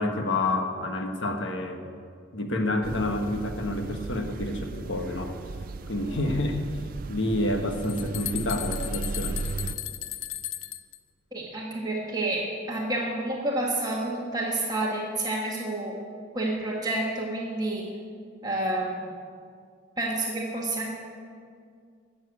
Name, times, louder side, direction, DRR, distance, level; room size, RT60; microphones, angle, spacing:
voice 1, 0.0-1.8 2.3-5.4 5.9-6.6 7.1-9.4, left 1 dB, 65° left, 4 dB, 1.4 m, -28 dB
sound 1, 2.8-9.7, right 3 dB, 45° right, 0.4 m, -36 dB
sound 2, 7.5-7.6 7.8-11.0, left 13 dB, 90° left, 0.6 m, -36 dB
voice 2, 11.3-16.0 16.3-17.9 18.4-19.1 20.0-20.9, right 2 dB, 20° right, -2 dB, 1.5 m, -29 dB
12.5 x 7.6 x 8.3 m, 2.2 s
head